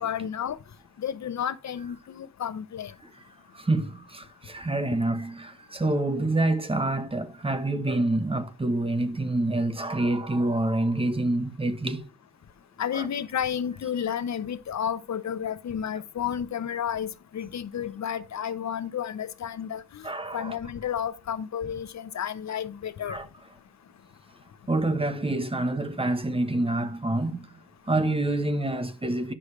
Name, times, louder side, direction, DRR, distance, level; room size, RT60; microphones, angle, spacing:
voice 1, 0.0-0.6 1.0-2.9 12.8-20.1 20.3-23.2, left 8 dB, 65° left, 0.8 m, -31 dB
voice 2, 3.5-12.1 12.9-13.1 20.0-20.5 23.1-23.3 24.7-29.3, right 2 dB, 20° right, 1.1 m, -27 dB
10.0 x 6.3 x 3.3 m
cardioid pair, 90°, 30 cm